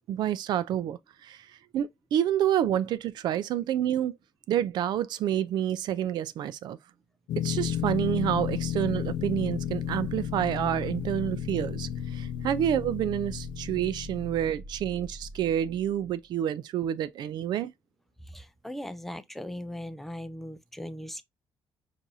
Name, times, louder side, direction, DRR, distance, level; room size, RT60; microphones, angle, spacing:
voice 1, 0.1-1.4 1.7-4.2 4.5-6.8 7.4-17.7, right 10 dB, 60° right, 0.4 m, -28 dB
sound 1, 7.3-14.5, left 11 dB, 75° left, 0.4 m, -33 dB
sound 2, 7.5-16.2, right 2 dB, 90° right, 0.8 m, -43 dB
voice 2, 18.3-21.2, left 1 dB, 5° left, 0.4 m, -39 dB
6.2 x 2.6 x 2.7 m
cardioid pair, 175°, 8 cm